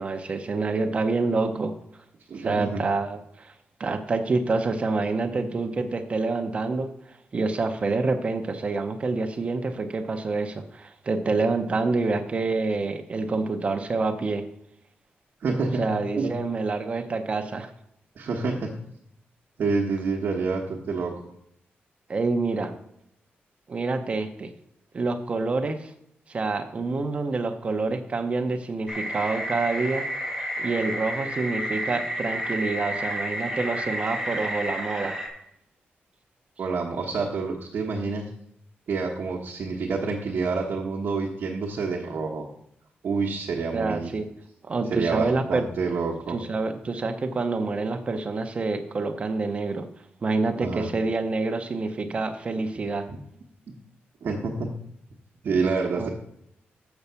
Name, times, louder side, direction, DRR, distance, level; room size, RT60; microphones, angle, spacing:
voice 1, 0.0-1.7 2.4-3.5 3.8-14.4 15.8-17.7 22.1-22.7 23.7-24.5 24.9-25.9 26.3-30.1 30.6-35.2 43.7-44.3 44.6-45.7 46.3-49.9 50.2-53.1 55.9-56.1, right 3 dB, 30° right, 7 dB, 0.7 m, -27 dB
voice 2, 2.3-2.8 15.4-15.8 16.2-16.3 18.2-18.7 19.6-21.1 36.6-38.3 38.9-42.5 43.0-44.1 44.9-46.4 50.6-50.9 53.1-53.2 54.2-54.7 55.4-56.1, right 4 dB, 55° right, -1 dB, 1.0 m, -27 dB
sound 1, 28.9-35.3, equal, ahead, 1.9 m, -31 dB
7.0 x 5.4 x 6.8 m, 0.75 s
wide cardioid pair, 175°, 4 cm